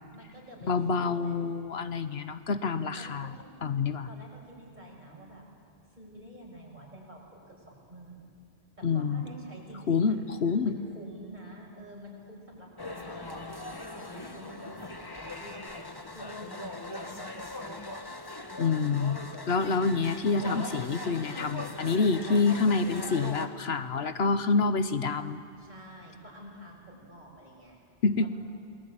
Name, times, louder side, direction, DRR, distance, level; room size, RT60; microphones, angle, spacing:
voice 1, 0.1-1.4 3.0-3.5 4.1-5.4 5.9-8.4 8.8-10.2 10.5-18.0 25.6-27.8 28.2-28.3, equal, 45° right, -2 dB, 6.5 m, -48 dB
voice 2, 0.7-3.3 3.6-4.1 8.8-9.2 9.9-10.7 18.6-19.2 19.5-25.4 28.0-28.3, left 4 dB, 70° left, 11 dB, 1.2 m, -27 dB
sound 1, 12.8-23.5, left 1 dB, 20° left, 1.3 m, -40 dB
28.5 x 21.0 x 8.8 m, 2.5 s
omnidirectional pair, 1.1 m